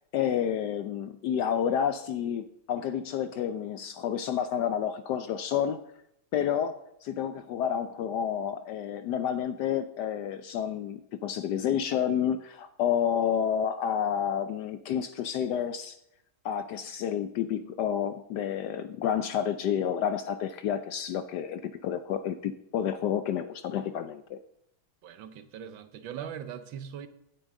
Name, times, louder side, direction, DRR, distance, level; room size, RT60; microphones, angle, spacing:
voice 1, 0.0-5.8 6.3-16.0 16.4-24.4, left 9 dB, 75° left, 11 dB, 1.0 m, -30 dB
voice 2, 25.0-27.1, right 8 dB, 75° right, 11 dB, 1.5 m, -40 dB
16.5 x 9.9 x 3.7 m, 0.78 s
omnidirectional pair, 2.2 m